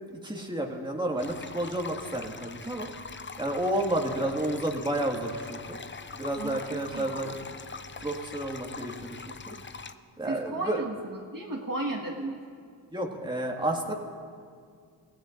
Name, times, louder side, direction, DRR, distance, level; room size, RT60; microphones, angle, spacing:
voice 1, 0.2-3.1 3.4-5.8 6.1-7.3 8.0-9.6 10.2-10.8 12.9-13.9, right 1 dB, 10° right, 0 dB, 1.9 m, -31 dB
sound 1, 1.2-9.9, left 5 dB, 25° left, 0.6 m, -43 dB
voice 2, 6.4-7.3 10.3-12.4, right 2 dB, 45° right, -2 dB, 1.7 m, -35 dB
23.5 x 16.0 x 2.6 m, 2.2 s
cardioid pair, 45°, 45 cm